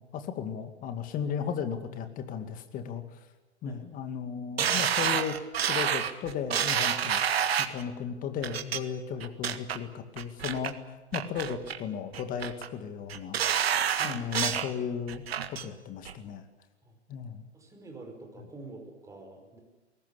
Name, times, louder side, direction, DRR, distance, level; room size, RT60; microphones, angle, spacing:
voice 1, 0.0-3.2 3.6-5.4 5.7-7.2 7.6-13.4 14.0-15.2 15.5-16.4 17.1-17.4, left 7 dB, 25° left, 8 dB, 2.4 m, -35 dB
sound 1, 4.6-7.8 8.4-8.8 9.2-9.8 10.2-10.7 11.1-11.8 12.1-12.7 13.1-14.7 15.1-15.7 16.1-16.2, right 8 dB, 60° right, 1.8 m, -28 dB
voice 2, 17.5-19.6, right 3 dB, 10° right, 2 dB, 5.3 m, -46 dB
22.5 x 19.0 x 8.5 m, 1.2 s
figure-of-eight pair, 115°, 34 cm